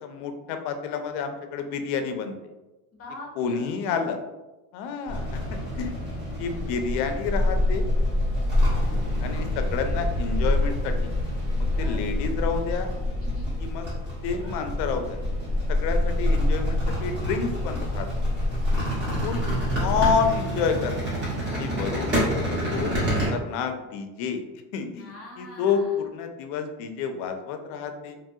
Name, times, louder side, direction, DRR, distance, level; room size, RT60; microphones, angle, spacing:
voice 1, 0.0-2.4 3.4-4.2 4.7-6.0 6.4-7.9 9.2-11.1 11.8-12.9 13.6-13.9 14.2-15.2 15.7-18.1 18.7-18.8 19.2-19.4 19.8-21.0 21.5-23.0 23.3-24.4 24.7-25.1 25.4-28.2, left 6 dB, 65° left, 7 dB, 0.5 m, -29 dB
voice 2, 2.9-4.0 13.2-13.5 18.8-19.7 25.0-26.0, left 2 dB, 30° left, -2 dB, 0.8 m, -44 dB
sound 1, 5.1-23.3, left 1 dB, 25° right, 1.3 m, -26 dB
3.0 x 2.3 x 2.7 m, 1.1 s
cardioid pair, 130°, 44 cm